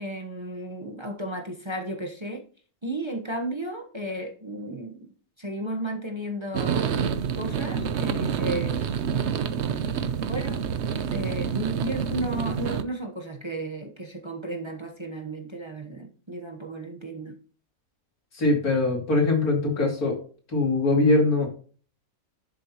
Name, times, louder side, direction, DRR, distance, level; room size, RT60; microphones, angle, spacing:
voice 1, 0.0-2.4 2.8-5.1 5.4-6.9 7.4-9.0 10.3-10.6 11.0-17.4, right 1 dB, 20° right, 3 dB, 1.0 m, -34 dB
sound 1, 6.5-12.8, right 7 dB, 60° right, 0.9 m, -27 dB
voice 2, 18.3-20.2 20.5-21.5, left 2 dB, 90° left, 0 dB, 3.2 m, -22 dB
11.5 x 6.8 x 2.9 m, 0.41 s
omnidirectional pair, 1.5 m